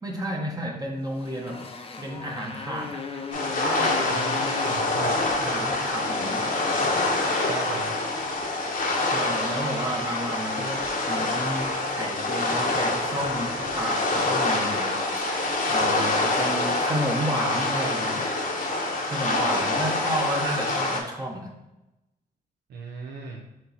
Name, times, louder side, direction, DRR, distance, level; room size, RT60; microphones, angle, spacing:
voice 1, 0.0-1.7 2.0-3.2 5.4-6.5 6.8-7.2 9.1-15.0 15.7-18.4 19.0-21.5, right 1 dB, 20° right, 0 dB, 0.8 m, -32 dB
Motorcycle, 1.0-8.4, left 4 dB, 35° left, 0.6 m, -38 dB
sound 1, 3.3-21.0, left 2 dB, 50° left, 1.0 m, -26 dB
voice 2, 4.1-5.2 7.5-7.9 22.7-23.4, right 4 dB, 80° right, 0 dB, 0.6 m, -36 dB
4.3 x 3.0 x 4.0 m, 0.95 s
cardioid pair, 90°, 17 cm